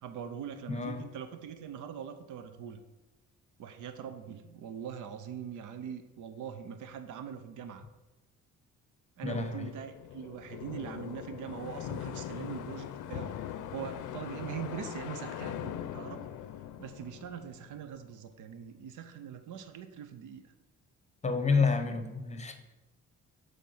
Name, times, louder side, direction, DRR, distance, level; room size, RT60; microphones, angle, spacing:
voice 1, 0.0-2.8 3.6-7.8 9.2-13.3 13.7-16.3 16.8-20.5 21.5-21.7 22.0-22.1, right 8 dB, 85° right, 9 dB, 0.7 m, -42 dB
voice 2, 9.2-9.6 21.2-22.5, left 5 dB, 25° left, 7 dB, 0.9 m, -29 dB
sound 1, 9.3-18.1, left 10 dB, 80° left, 0.5 m, -41 dB
7.4 x 3.6 x 5.5 m, 1.0 s
cardioid pair, 90°, 30 cm